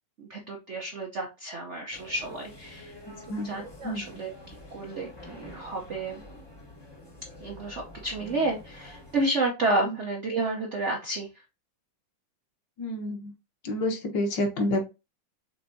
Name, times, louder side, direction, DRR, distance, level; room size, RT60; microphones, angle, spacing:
voice 1, 0.2-3.0 3.4-6.2 7.4-11.3, right 2 dB, 80° right, 1 dB, 0.6 m, -31 dB
sound 1, 1.9-9.2, left 1 dB, 35° left, 0.4 m, -47 dB
voice 2, 12.8-13.3 13.6-14.8, left 1 dB, 65° left, 3 dB, 1.5 m, -29 dB
5.8 x 3.4 x 2.6 m, 0.27 s
omnidirectional pair, 2.3 m